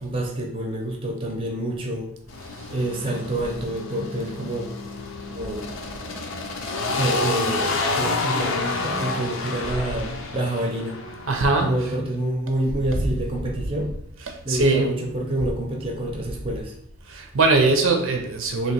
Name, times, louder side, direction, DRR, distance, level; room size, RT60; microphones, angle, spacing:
voice 1, 0.0-2.1 2.7-4.7 5.3-5.7 6.9-11.0 11.6-13.9 14.4-16.7, right 1 dB, 25° right, 0.7 m, -27 dB
sound 1, 2.3-11.9, left 3 dB, 65° left, 0.6 m, -29 dB
voice 2, 11.3-11.9 13.0-13.1 14.2-14.9 17.1-18.7, right 3 dB, 65° right, 0.6 m, -21 dB
3.0 x 2.9 x 4.4 m
head